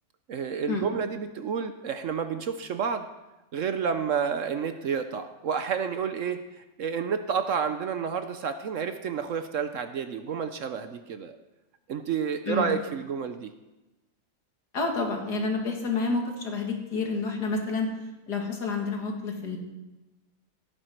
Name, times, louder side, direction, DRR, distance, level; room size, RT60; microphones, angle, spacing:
voice 1, 0.3-3.1 3.5-6.4 6.8-11.4 11.9-13.5, right 6 dB, 60° right, 9 dB, 0.9 m, -30 dB
voice 2, 14.7-17.9 18.3-19.6, left 3 dB, 80° left, 2 dB, 2.5 m, -29 dB
16.0 x 9.9 x 4.5 m, 1.0 s
omnidirectional pair, 1.7 m